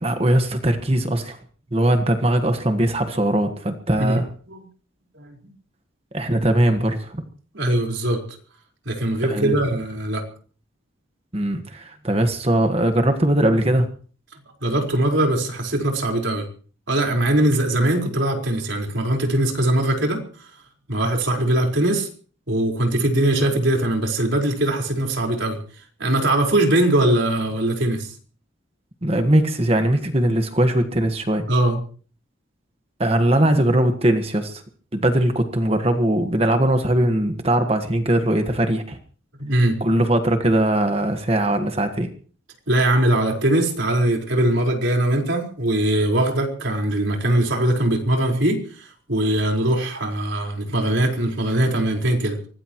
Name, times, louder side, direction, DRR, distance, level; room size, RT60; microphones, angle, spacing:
voice 1, 0.0-1.4 1.7-4.2 6.1-7.2 9.3-9.5 11.3-13.9 29.0-31.4 33.0-34.6 34.9-39.0 39.8-42.1, right 1 dB, 30° right, 6 dB, 1.5 m, -20 dB
voice 2, 3.9-4.7 5.1-5.4 7.5-8.2 8.8-10.2 14.6-16.5 16.9-20.5 20.9-22.1 22.5-25.6 26.0-28.1 31.5-31.8 39.4-39.8 42.7-52.4, right 1 dB, 65° right, 1 dB, 4.7 m, -21 dB
24.0 x 19.0 x 3.1 m, 0.43 s
head